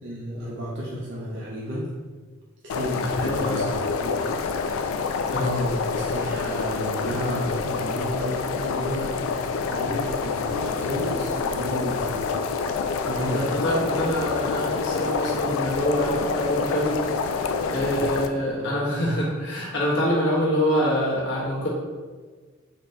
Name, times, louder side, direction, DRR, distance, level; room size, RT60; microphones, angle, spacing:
voice 1, 0.0-1.9 2.6-4.2 5.4-9.1 9.6-12.3 13.0-13.6 17.9-18.0 18.3-18.7, equal, 60° right, -5 dB, 0.7 m, -32 dB
sound 1, 2.7-18.3, left 5 dB, 85° left, 0.3 m, -27 dB
voice 2, 3.0-3.6 5.3-5.6 13.3-17.0 17.7-21.7, equal, 60° left, -5 dB, 1.2 m, -25 dB
4.1 x 2.8 x 3.3 m, 1.4 s
head